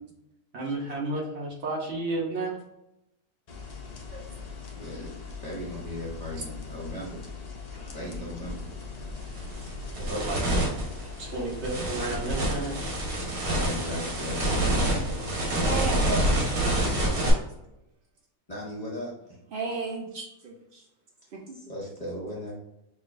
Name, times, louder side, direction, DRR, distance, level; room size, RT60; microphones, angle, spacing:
voice 1, 0.5-2.6 10.0-10.4 11.2-12.8 15.0-15.6 17.1-17.3 20.1-20.3, right 2 dB, 50° right, -2 dB, 1.1 m, -32 dB
sound 1, 3.5-17.1, left 4 dB, 65° left, 0.4 m, -41 dB
voice 2, 4.7-5.1 5.4-7.3 7.9-8.7 13.6-14.4 18.5-19.4 21.7-22.5, left 1 dB, 35° left, -4 dB, 0.7 m, -37 dB
sound 2, 8.5-8.6 9.1-17.3, right 1 dB, 65° right, 1.4 m, -27 dB
voice 3, 15.6-16.3 19.5-20.8 21.3-21.6, right 3 dB, 85° right, 0 dB, 0.4 m, -33 dB
6.0 x 2.4 x 2.5 m, 0.86 s
omnidirectional pair, 1.6 m